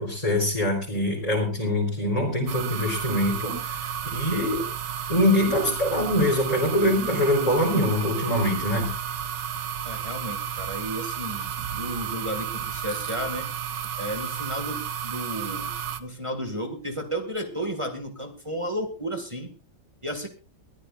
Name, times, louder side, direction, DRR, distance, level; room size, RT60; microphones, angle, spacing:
voice 1, 0.0-4.6 5.1-8.9, left 1 dB, 20° left, -3 dB, 4.2 m, -24 dB
sound 1, 2.5-16.0, right 8 dB, 65° right, 1.6 m, -32 dB
voice 2, 9.8-13.5 14.0-15.7 16.0-19.5 20.0-20.3, equal, 15° right, 4 dB, 2.1 m, -33 dB
22.5 x 14.5 x 2.6 m, 0.33 s
omnidirectional pair, 2.1 m